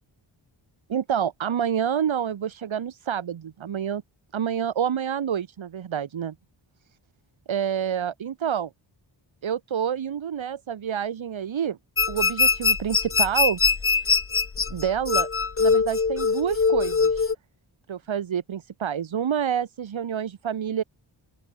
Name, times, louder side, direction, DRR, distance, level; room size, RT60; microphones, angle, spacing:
voice 1, 0.9-4.0 4.3-6.3 7.5-8.7 9.4-11.8 12.1-13.6 13.9-14.1 14.7-15.3 15.6-17.3 17.9-20.8, right 8 dB, 75° right, 1.8 m, -28 dB
sound 1, 12.0-17.3, left 5 dB, 30° left, 0.9 m, -22 dB
open air
wide cardioid pair, 115°, 47 cm